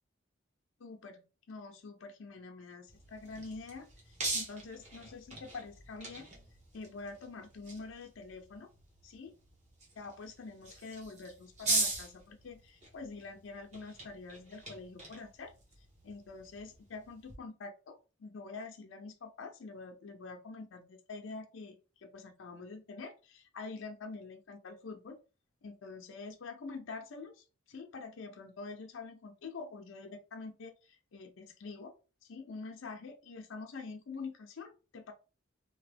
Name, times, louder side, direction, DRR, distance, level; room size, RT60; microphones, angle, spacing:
voice 1, 0.8-1.2 1.5-6.3 6.7-8.7 9.0-9.4 10.0-15.5 16.0-25.2 25.6-31.9 32.2-35.1, left 4 dB, 85° left, 4 dB, 0.5 m, -46 dB
sound 1, 2.9-17.4, right 2 dB, 35° right, 1.1 m, -41 dB
2.9 x 2.8 x 3.3 m, 0.33 s
head